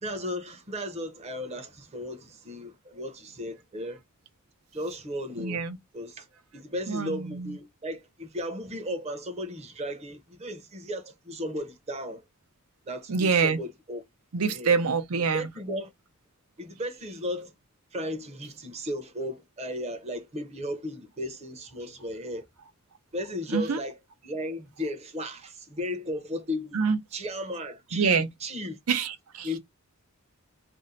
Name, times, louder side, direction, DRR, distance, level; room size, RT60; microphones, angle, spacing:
voice 1, 0.0-4.0 4.7-5.6 5.9-6.3 6.5-12.2 12.9-14.0 14.4-14.7 15.3-15.9 16.6-17.5 17.9-22.4 23.1-24.0 24.2-26.8 27.1-28.8 29.4-29.6, left 1 dB, 30° right, 0.7 m, -35 dB
voice 2, 5.4-5.8 6.9-7.5 13.1-13.6 14.3-15.5 23.5-23.8 26.7-27.0 27.9-28.3 28.9-29.6, right 5 dB, 80° right, 0.6 m, -26 dB
2.7 x 2.1 x 3.9 m
head